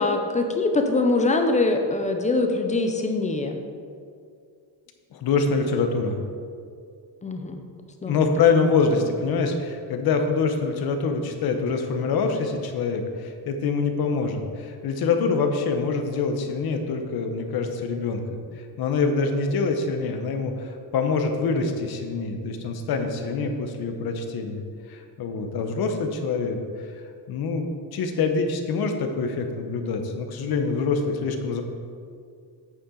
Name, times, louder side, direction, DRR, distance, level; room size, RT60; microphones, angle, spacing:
voice 1, 0.0-3.6 7.2-7.6 8.0-8.2, left 3 dB, 15° left, 5 dB, 0.5 m, -23 dB
voice 2, 5.1-6.2 8.1-26.9 27.3-31.6, left 4 dB, 55° left, 5 dB, 0.9 m, -25 dB
8.6 x 6.9 x 3.8 m, 2.3 s
cardioid pair, 170°, 43 cm